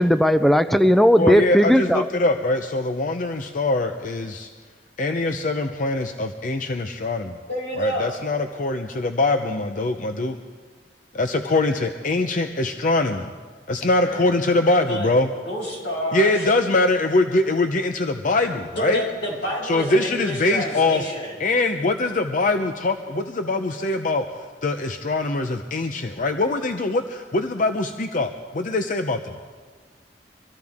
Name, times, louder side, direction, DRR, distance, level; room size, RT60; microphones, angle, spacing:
voice 1, 0.0-2.1, equal, ahead, 10 dB, 0.4 m, -16 dB
voice 2, 1.2-4.5 5.0-7.4 7.8-10.4 11.1-13.3 13.7-15.3 16.1-19.0 19.6-21.0 21.4-24.2 24.6-29.4, left 2 dB, 50° left, 6 dB, 0.7 m, -23 dB
voice 3, 7.5-8.1 14.0-14.3 14.9-15.1 15.4-16.5 18.7-21.3, equal, 90° left, -3 dB, 6.6 m, -28 dB
24.5 x 15.0 x 3.6 m, 1.5 s
head